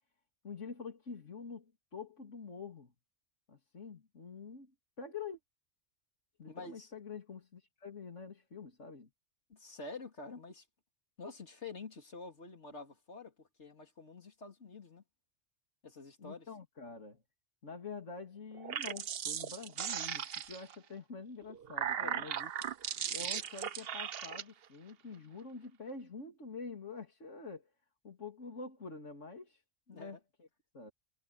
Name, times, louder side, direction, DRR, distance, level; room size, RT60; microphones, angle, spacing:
voice 1, 0.4-2.9 3.5-4.7 5.0-5.4 6.4-9.1 16.2-17.2 17.6-22.5 23.1-27.7 28.0-29.6 29.9-30.5 30.7-30.9, left 4 dB, 85° left, 3.5 m, -46 dB
voice 2, 6.5-6.9 9.5-10.7 11.2-15.0 15.8-16.5 22.0-22.2 29.9-30.2, left 3 dB, 70° left, 3.5 m, -48 dB
sound 1, 18.5-20.8 21.4-24.4, right 9 dB, 60° right, 0.9 m, -38 dB
omnidirectional pair, 1.2 m